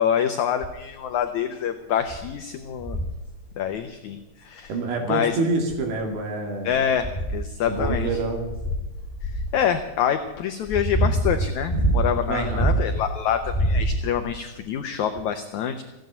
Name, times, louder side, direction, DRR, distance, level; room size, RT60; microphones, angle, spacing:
voice 1, 0.0-3.0 3.6-4.7 5.1-5.4 6.6-8.1 9.2-15.8, left 9 dB, 70° left, 7 dB, 1.8 m, -26 dB
sound 1, 0.6-0.9 1.5-1.6 2.1-2.3 2.8-3.2 4.6-4.7 5.5-6.2 6.7-9.6 10.3-13.1 13.4-14.3 15.2-15.3, right 1 dB, 10° left, 2.4 m, -26 dB
voice 2, 4.7-6.8 7.6-8.4 12.3-12.7, right 3 dB, 75° right, 3 dB, 4.3 m, -27 dB
16.5 x 9.1 x 9.5 m, 1.1 s
omnidirectional pair, 4.4 m